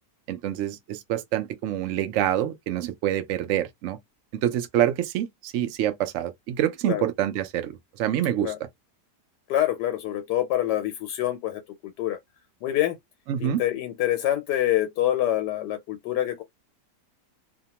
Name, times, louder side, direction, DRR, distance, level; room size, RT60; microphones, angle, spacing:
voice 1, 0.3-4.0 4.4-8.5 13.3-13.6, right 11 dB, 70° right, 0.7 m, -26 dB
voice 2, 9.5-12.2 12.6-13.0 13.4-16.4, left 13 dB, 85° left, 1.2 m, -26 dB
2.8 x 2.2 x 2.8 m
omnidirectional pair, 1.8 m